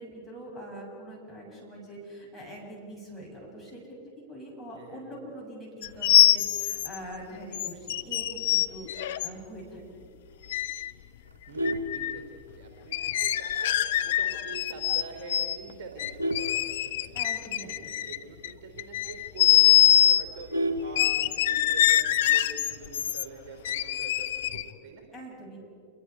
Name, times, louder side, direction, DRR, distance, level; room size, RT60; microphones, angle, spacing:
voice 1, 0.0-9.8 17.1-18.1 25.1-25.6, right 1 dB, ahead, -4 dB, 7.9 m, -43 dB
voice 2, 4.7-5.1 11.5-13.7 14.0-17.2 17.5-20.5 20.8-25.0, right 4 dB, 45° right, 1 dB, 3.2 m, -45 dB
sound 1, 5.8-7.0 7.5-9.3 10.5-10.9 11.6-12.2 12.9-15.0 15.3-15.6 16.0-18.5 18.8-20.2 21.0-23.2 23.7-24.7, left 12 dB, 55° left, 0.7 m, -24 dB
Vehicle horn car horn honking, 11.3-12.8 13.2-13.5 13.8-13.9 14.3-14.4 14.7-15.1 15.6-17.5 17.8-17.9 18.2-18.3 18.7-18.8 19.2-19.3 19.5-21.6 22.8-23.2, equal, 80° right, 1.1 m, -33 dB
28.5 x 23.0 x 4.9 m, 2.4 s
figure-of-eight pair, 90°, 0 cm